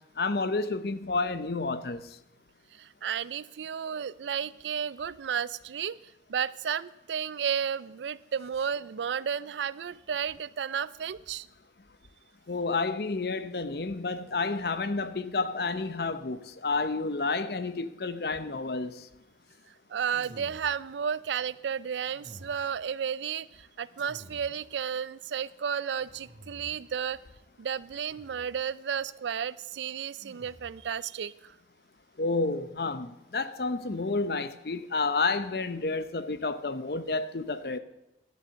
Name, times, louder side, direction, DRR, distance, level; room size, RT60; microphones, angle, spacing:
voice 1, 0.2-2.0 12.5-19.1 32.2-37.8, left 3 dB, 60° left, 0.7 m, -30 dB
voice 2, 2.7-6.0 6.3-11.5 19.9-27.2 27.6-31.5, right 7 dB, 90° right, 0.4 m, -33 dB
sound 1, 20.1-21.0 22.1-22.8 24.0-24.8 26.0-27.0 28.1-28.6 30.2-30.9, right 1 dB, 45° right, 1.2 m, -51 dB
11.5 x 7.1 x 7.4 m
head